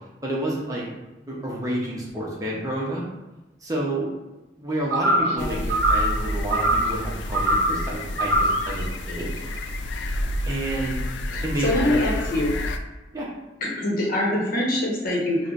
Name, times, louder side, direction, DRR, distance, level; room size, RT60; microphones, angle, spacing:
voice 1, 0.2-0.9 1.3-3.0 3.6-4.1 4.6-9.3 10.5-11.1 11.4-12.0 12.4-12.6 13.1-13.3, right 1 dB, 20° right, -4 dB, 0.7 m, -29 dB
sound 1, 4.9-5.4 5.7-6.1 6.5-6.9 7.3-7.8 8.2-8.6, right 1 dB, 70° right, 0.6 m, -21 dB
voice 2, 5.2-5.6 11.3-12.5 13.8-15.5, left 1 dB, 55° left, -4 dB, 1.0 m, -25 dB
sound 2, 5.4-12.8, left 1 dB, 75° left, 0.3 m, -29 dB
5.4 x 2.2 x 2.4 m, 1.1 s
head